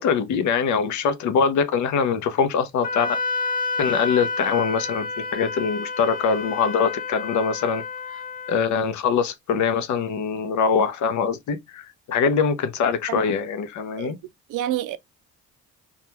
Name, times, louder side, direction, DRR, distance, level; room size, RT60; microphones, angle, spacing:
voice 1, 0.0-3.2 3.8-7.8 8.5-14.2, left 6 dB, 70° left, 0.6 m, -23 dB
Wind instrument woodwind instrument, 2.8-8.6, left 4 dB, 30° left, 0.4 m, -29 dB
voice 2, 14.5-15.0, right 12 dB, 85° right, 0.4 m, -28 dB
2.4 x 2.2 x 2.9 m
cardioid pair, 90°, 30 cm